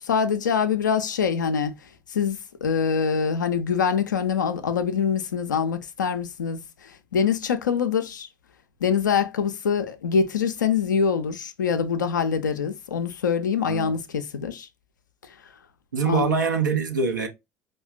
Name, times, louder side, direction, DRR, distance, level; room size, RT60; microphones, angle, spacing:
voice 1, 0.0-1.7 2.1-8.3 8.8-14.7 16.1-16.3, left 6 dB, 80° left, 0.4 m, -24 dB
voice 2, 15.9-17.3, right 5 dB, 80° right, 0.5 m, -24 dB
4.7 x 2.2 x 2.2 m
figure-of-eight pair, 60°, 10 cm